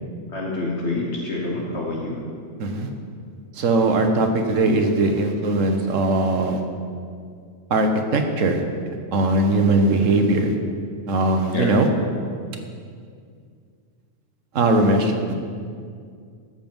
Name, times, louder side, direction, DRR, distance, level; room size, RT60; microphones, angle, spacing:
voice 1, 0.3-2.2 11.5-11.8, left 2 dB, 60° left, -2 dB, 1.4 m, -27 dB
voice 2, 3.6-6.6 7.7-8.6 9.1-10.5 11.1-11.9 14.5-15.3, right 2 dB, 75° right, 4 dB, 1.4 m, -20 dB
13.5 x 5.5 x 7.1 m, 2.2 s
omnidirectional pair, 1.4 m